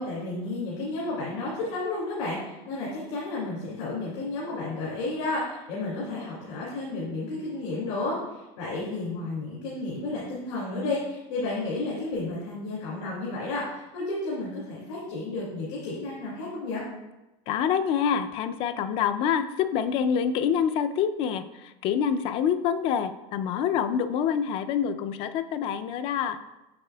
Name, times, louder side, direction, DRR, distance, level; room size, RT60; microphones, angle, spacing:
voice 1, 0.0-16.8, left 2 dB, 75° left, -6 dB, 2.2 m, -32 dB
voice 2, 17.5-26.4, left 8 dB, 40° left, 11 dB, 0.4 m, -26 dB
7.7 x 6.6 x 2.2 m, 1.0 s
supercardioid pair, 155°, 15 cm